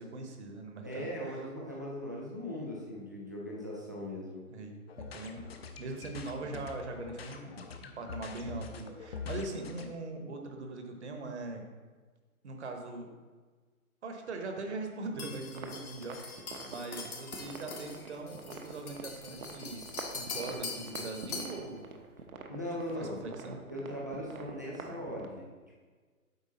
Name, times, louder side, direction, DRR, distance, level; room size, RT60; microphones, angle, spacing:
voice 1, 0.0-1.4 4.5-5.5 5.8-7.6 8.0-11.7 12.4-13.1 14.0-21.9 23.0-23.6, right 3 dB, 50° right, 4 dB, 1.2 m, -41 dB
voice 2, 0.8-4.4 22.5-23.2 23.7-25.4, equal, 15° right, -5 dB, 0.5 m, -39 dB
sound 1, 4.9-9.8, left 5 dB, 45° left, 0.7 m, -44 dB
sound 2, 15.2-21.6, left 4 dB, 80° left, 2.0 m, -43 dB
sound 3, 15.4-25.3, right 4 dB, 70° right, 1.0 m, -47 dB
8.2 x 4.7 x 4.1 m, 1.4 s
hypercardioid pair, 160°, 43 cm